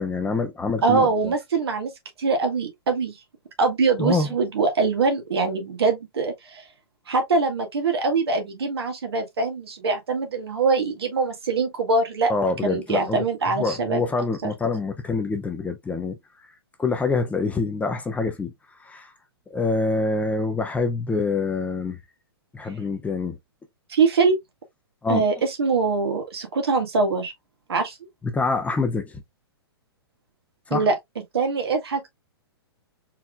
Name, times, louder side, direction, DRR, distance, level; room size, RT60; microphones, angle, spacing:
voice 1, 0.0-1.3 4.0-4.3 12.3-13.2 13.5-16.2 16.8-18.5 18.8-19.1 19.5-22.0 22.5-23.4 25.0-25.3 28.2-29.2 30.7-30.9, left 3 dB, 10° left, 0.7 m, -25 dB
voice 2, 0.8-1.9 2.2-3.2 3.6-6.6 7.1-12.3 12.6-14.0 14.4-14.5 23.9-24.4 25.1-27.3 27.7-28.0 30.7-30.9 31.3-32.1, right 4 dB, 75° right, 1.7 m, -23 dB
4.4 x 3.6 x 2.3 m
hypercardioid pair, 115°, 13 cm